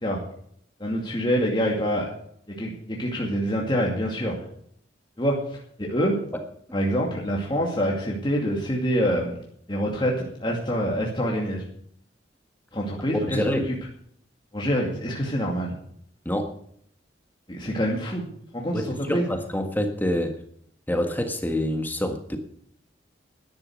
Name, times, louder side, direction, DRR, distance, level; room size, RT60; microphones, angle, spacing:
voice 1, 0.8-2.1 2.6-4.3 5.2-5.3 5.8-6.2 6.7-9.4 9.7-11.6 12.7-13.6 14.5-15.7 17.5-18.2 18.5-19.3, equal, 25° left, -2 dB, 2.4 m, -26 dB
voice 2, 13.3-13.7 16.2-16.5 18.7-20.4 20.9-22.4, left 1 dB, 10° left, 5 dB, 1.5 m, -26 dB
12.5 x 10.5 x 6.3 m, 0.66 s
head